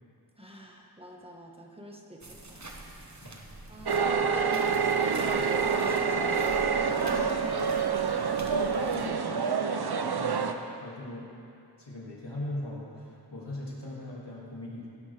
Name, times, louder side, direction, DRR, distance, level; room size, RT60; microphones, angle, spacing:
voice 1, 0.4-3.4 3.7-9.5, equal, 15° right, -2 dB, 1.6 m, -45 dB
sound 1, 2.2-9.1, right 1 dB, 40° right, 1.3 m, -46 dB
sound 2, 3.9-10.5, right 5 dB, 65° right, 0.7 m, -27 dB
voice 2, 10.1-10.5 10.8-11.3 11.8-14.9, left 1 dB, 75° left, -5 dB, 2.7 m, -39 dB
17.5 x 11.0 x 3.5 m, 2.7 s
wide cardioid pair, 40°, 41 cm